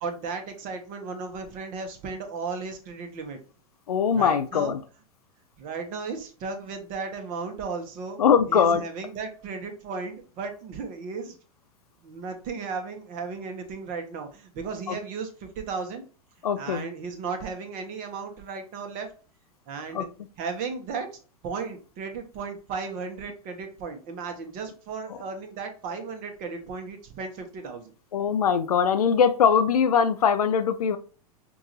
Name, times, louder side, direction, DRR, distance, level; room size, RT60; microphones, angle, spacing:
voice 1, 0.0-3.4 4.1-4.7 5.6-8.2 8.5-11.4 12.0-16.0 16.6-19.1 19.7-20.1 20.4-21.1 21.4-27.9, right 5 dB, 45° right, 5 dB, 1.2 m, -35 dB
voice 2, 3.9-4.8 8.2-8.8 14.9-15.0 16.4-16.9 19.9-20.1 28.1-31.0, left 7 dB, 85° left, 11 dB, 0.4 m, -21 dB
5.9 x 2.6 x 3.1 m, 0.38 s
hypercardioid pair, 100°, 19 cm